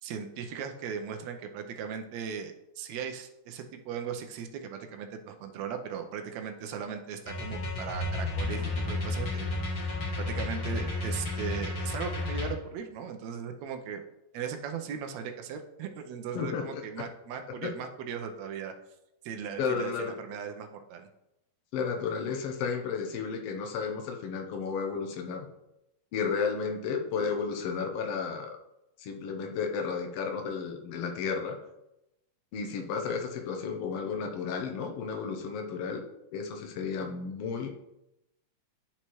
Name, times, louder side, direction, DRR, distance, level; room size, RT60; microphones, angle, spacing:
voice 1, 0.0-14.0 14.3-18.7 19.2-21.1, right 7 dB, 75° right, 5 dB, 1.8 m, -38 dB
sound 1, 7.3-12.5, left 2 dB, 50° left, 2.6 m, -32 dB
voice 2, 16.3-16.8 17.6-17.7 19.6-20.1 21.7-25.5 26.1-28.6 29.0-31.5 32.5-36.0 36.3-37.7, left 5 dB, 65° left, 3 dB, 1.6 m, -33 dB
11.0 x 4.3 x 3.1 m, 0.88 s
omnidirectional pair, 3.6 m